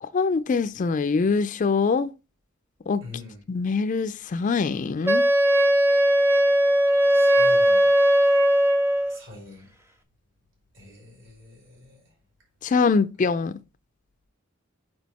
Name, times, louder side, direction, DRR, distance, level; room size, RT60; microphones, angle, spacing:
voice 1, 0.0-2.1 2.9-3.0 3.5-5.3 12.6-13.5, left 4 dB, 35° left, 0.3 m, -23 dB
voice 2, 3.0-3.4 7.1-7.9 9.1-9.6 10.7-12.0, left 3 dB, 60° right, 3.4 m, -44 dB
Wind instrument woodwind instrument, 5.1-9.2, equal, 10° right, 0.7 m, -19 dB
6.2 x 4.9 x 4.1 m
head